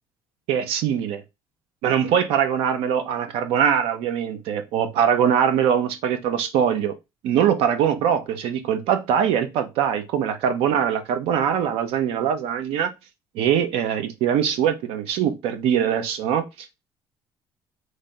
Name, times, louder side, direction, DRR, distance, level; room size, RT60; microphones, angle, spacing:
voice 1, 0.5-1.2 1.8-6.9 7.2-12.9 13.3-16.4, right 8 dB, 85° right, 0.7 m, -22 dB
3.3 x 2.6 x 4.0 m
cardioid pair, 115°, 10 cm